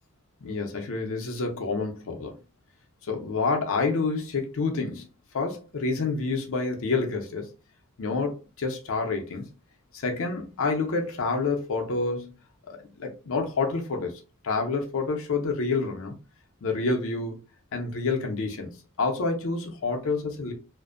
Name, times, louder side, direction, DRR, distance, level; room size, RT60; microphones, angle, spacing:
voice 1, 0.4-2.3 3.0-5.1 5.3-7.5 8.0-9.5 9.9-12.3 12.7-14.1 14.4-16.1 16.6-17.4 17.7-20.5, left 4 dB, 65° left, 0.5 m, -28 dB
2.5 x 2.1 x 2.4 m
head